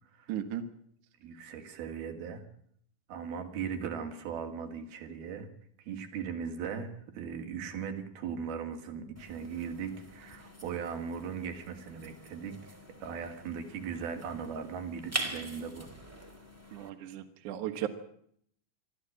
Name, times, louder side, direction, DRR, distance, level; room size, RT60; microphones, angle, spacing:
voice 1, 0.3-0.6 16.7-17.9, right 11 dB, 60° right, 7 dB, 2.8 m, -36 dB
voice 2, 1.2-2.5 3.1-5.5 5.8-15.9, right 6 dB, 90° right, 5 dB, 4.3 m, -38 dB
sound 1, 9.2-16.9, right 1 dB, 5° right, 2.3 m, -43 dB
23.5 x 14.0 x 8.7 m, 0.67 s
omnidirectional pair, 4.2 m